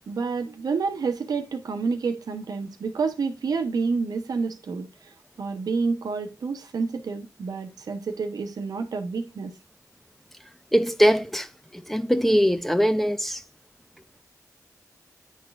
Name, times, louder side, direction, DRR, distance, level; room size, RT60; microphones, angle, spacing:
voice 1, 0.1-9.5, right 4 dB, 85° right, 1.0 m, -29 dB
voice 2, 10.7-11.5 11.7-13.4, equal, 5° left, 0.7 m, -21 dB
10.0 x 4.0 x 2.4 m
cardioid pair, 65°, 6 cm